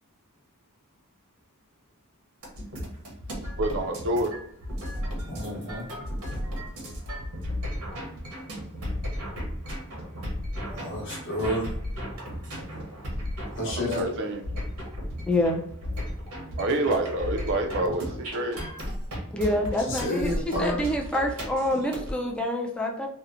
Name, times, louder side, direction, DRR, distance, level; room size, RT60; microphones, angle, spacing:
sound 1, 2.4-22.1, equal, 85° right, 0.9 m, -35 dB
voice 1, 3.6-4.3 13.7-14.4 16.6-18.6, right 1 dB, 55° right, 5 dB, 0.4 m, -27 dB
voice 2, 5.2-5.9 10.7-11.7 13.5-14.1 19.8-20.8, left 1 dB, 55° left, -4 dB, 0.9 m, -30 dB
voice 3, 15.2-15.6 19.3-23.1, left 1 dB, 5° left, 1 dB, 0.3 m, -27 dB
2.7 x 2.0 x 2.5 m, 0.72 s
head